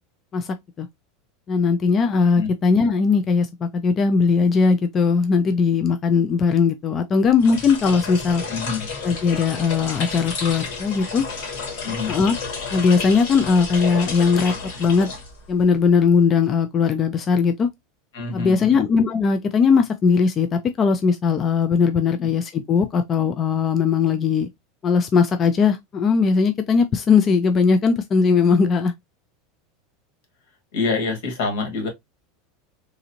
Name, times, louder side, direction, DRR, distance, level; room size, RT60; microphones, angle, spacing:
voice 1, 1.5-8.4 9.0-11.2 12.1-12.4 12.7-14.5 14.8-15.1 15.5-17.7 18.3-24.5 24.8-28.9, left 5 dB, 25° left, 0.3 m, -19 dB
sound 1, 7.3-15.7, left 4 dB, 60° left, 2.2 m, -31 dB
voice 2, 8.5-8.9 11.8-12.1 18.1-18.8 22.2-22.3 30.7-31.9, left 4 dB, 80° left, 1.7 m, -26 dB
3.9 x 2.5 x 2.8 m
supercardioid pair, 155°, 0 cm